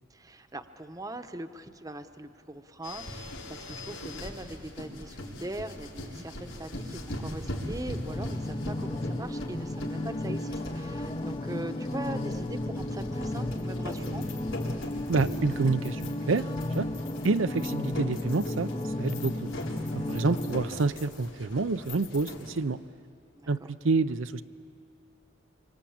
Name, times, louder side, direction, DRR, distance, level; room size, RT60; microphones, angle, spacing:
voice 1, 0.1-14.3 23.3-23.7, right 1 dB, 20° right, 9 dB, 0.9 m, -41 dB
sound 1, 2.8-22.6, left 1 dB, 85° left, 4.4 m, -40 dB
sound 2, 8.1-20.6, left 1 dB, 25° left, 0.7 m, -33 dB
voice 2, 15.1-16.9 17.2-18.7 19.0-19.5 19.9-22.8 23.5-24.4, right 3 dB, 85° right, 12 dB, 0.7 m, -28 dB
26.0 x 25.0 x 8.7 m, 2.4 s
head